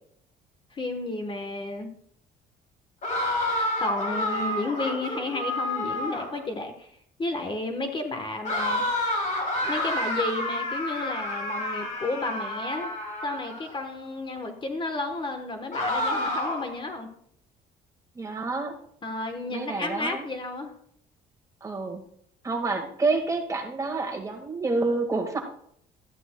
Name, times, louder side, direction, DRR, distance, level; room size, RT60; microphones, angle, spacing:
voice 1, 0.7-1.9 3.5-8.8 9.6-12.9 13.2-17.1 19.0-20.7, left 2 dB, 30° left, 6 dB, 1.1 m, -32 dB
sound 1, 3.0-6.4 8.4-13.7 15.7-16.8, left 1 dB, 50° left, 3.8 m, -29 dB
voice 2, 18.1-18.7 19.5-20.2 21.6-22.0 22.4-25.4, right 3 dB, 20° right, 2 dB, 1.7 m, -28 dB
13.5 x 10.5 x 2.2 m, 0.66 s
cardioid pair, 110°, 17 cm